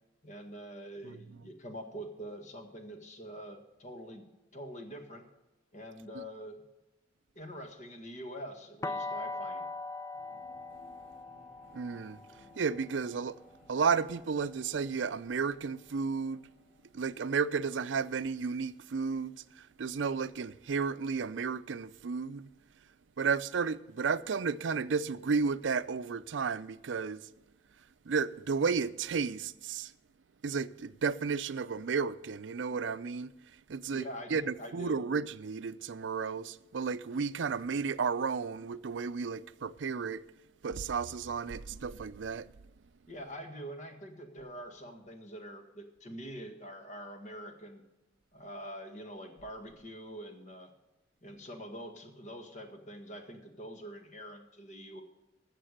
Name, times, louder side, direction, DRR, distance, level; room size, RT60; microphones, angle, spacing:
voice 1, 0.2-5.2 5.7-6.6 7.4-9.7 33.9-35.0 43.1-47.8 48.3-50.7 51.2-55.0, equal, 40° left, 1.8 m, -45 dB
sound 1, 8.8-14.7, left 3 dB, 20° left, 0.4 m, -42 dB
sound 2, 10.1-22.1, left 1 dB, 60° left, 3.6 m, -64 dB
voice 2, 11.7-12.2 12.6-13.4 13.7-16.5 16.9-22.5 23.2-27.2 28.1-29.9 30.4-33.3 33.7-40.2 40.6-42.5, right 5 dB, 85° right, 0.5 m, -33 dB
15.0 x 6.7 x 6.6 m
head